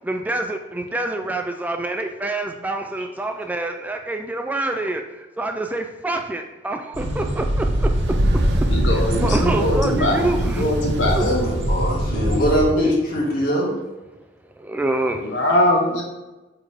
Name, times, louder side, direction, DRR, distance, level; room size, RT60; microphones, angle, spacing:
voice 1, 0.0-7.9 9.2-10.7 11.1-11.2 12.8-12.9 14.6-15.4, right 2 dB, 10° right, 5 dB, 0.3 m, -26 dB
sound 1, 6.9-12.6, equal, 80° right, 1.1 m, -22 dB
sound 2, 7.7-12.3, right 2 dB, 60° right, 0.7 m, -32 dB
voice 2, 8.7-11.2 15.2-16.0, left 1 dB, 75° left, 0 dB, 1.1 m, -21 dB
voice 3, 11.1-13.7, equal, 55° left, -4 dB, 1.9 m, -22 dB
8.2 x 3.5 x 3.5 m, 1.1 s
head